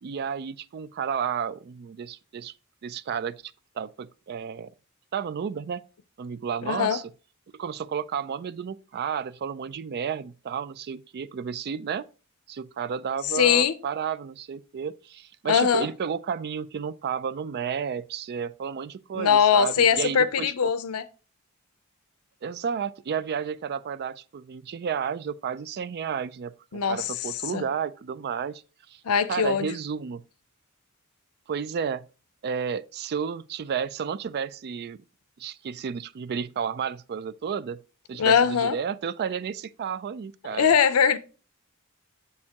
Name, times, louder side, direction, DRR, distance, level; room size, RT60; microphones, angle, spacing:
voice 1, 0.0-2.5 2.8-4.7 5.1-5.8 6.2-7.0 7.5-12.1 12.5-20.7 22.4-28.6 28.9-29.0 29.3-30.2 31.5-32.1 32.4-35.0 35.4-37.8 38.1-40.7, right 7 dB, 50° right, 0.3 m, -32 dB
voice 2, 6.6-7.0 13.3-13.7 15.5-15.9 19.1-21.0 26.7-27.1 27.5-27.6 29.0-29.7 38.2-38.8 40.4-41.2, left 7 dB, 80° left, 0.6 m, -21 dB
7.2 x 6.5 x 2.9 m
head